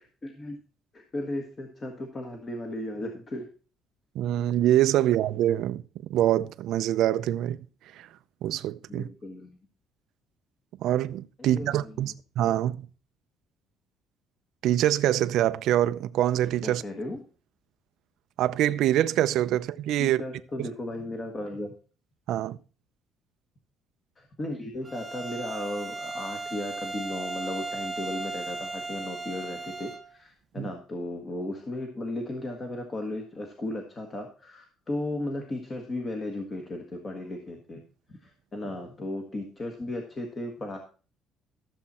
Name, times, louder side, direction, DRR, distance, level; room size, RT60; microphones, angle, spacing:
voice 1, 0.2-0.6 0.9-3.5 8.9-9.6 11.4-12.1 16.6-17.2 20.0-21.7 24.2-37.8 38.2-40.8, left 1 dB, 25° left, 1.5 m, -35 dB
voice 2, 4.1-5.8 6.1-7.6 8.0-8.1 8.4-9.1 10.8-12.9 14.6-16.8 18.4-20.2 20.6-20.7 22.3-22.6 30.6-30.7, right 12 dB, 65° right, 0.6 m, -25 dB
Bowed string instrument, 24.9-30.1, right 3 dB, 15° right, 0.9 m, -36 dB
14.0 x 7.4 x 4.3 m
cardioid pair, 165°, 0 cm